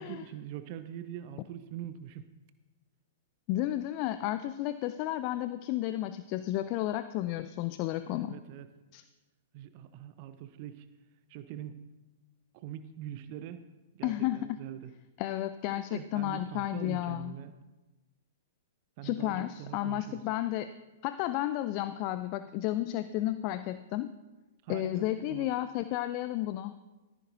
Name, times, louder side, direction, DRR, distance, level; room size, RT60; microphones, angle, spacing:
voice 1, 0.0-2.3 8.2-8.7 9.5-10.9 11.3-11.8 12.5-13.6 13.9-14.9 15.7-17.5 19.0-20.2 24.6-25.5, right 11 dB, 40° right, 11 dB, 0.6 m, -43 dB
voice 2, 3.5-8.4 8.9-9.0 14.0-14.6 15.2-17.4 19.0-20.7 21.0-24.1 24.7-26.7, left 14 dB, 35° left, 12 dB, 0.4 m, -32 dB
14.5 x 14.0 x 2.7 m, 1.2 s
figure-of-eight pair, 105°, 0 cm